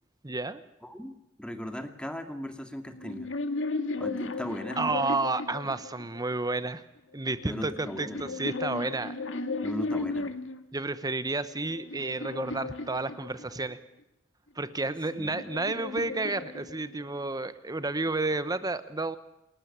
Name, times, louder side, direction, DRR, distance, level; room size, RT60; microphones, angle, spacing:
voice 1, 0.2-0.6 4.8-6.8 7.1-9.1 10.7-13.8 14.5-19.2, right 2 dB, 20° right, 13 dB, 1.0 m, -31 dB
voice 2, 0.8-3.3 4.0-5.0 7.5-8.4 9.6-10.3 15.2-15.4, equal, 5° left, 7 dB, 2.3 m, -38 dB
sound 1, 2.9-6.3 7.3-10.7 11.3-13.7 14.8-17.2, left 3 dB, 70° left, 2.0 m, -35 dB
29.0 x 13.0 x 9.9 m, 0.87 s
head